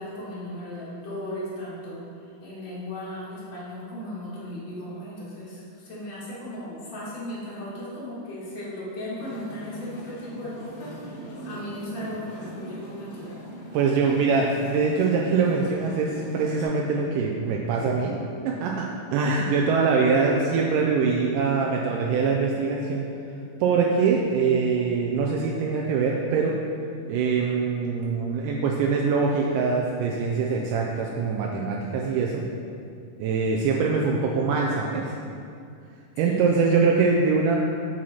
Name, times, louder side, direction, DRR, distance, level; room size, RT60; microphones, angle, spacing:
voice 1, 0.0-2.0 2.4-13.4 36.2-36.4, left 1 dB, 40° left, -9 dB, 2.0 m, -36 dB
sound 1, 9.2-16.6, equal, 60° left, 1.1 m, -40 dB
voice 2, 13.7-18.2 18.5-23.1 23.6-26.6 27.1-32.4 33.2-35.2 36.2-37.6, right 5 dB, 80° right, -1 dB, 2.1 m, -23 dB
7.5 x 4.3 x 4.2 m, 2.4 s
omnidirectional pair, 3.8 m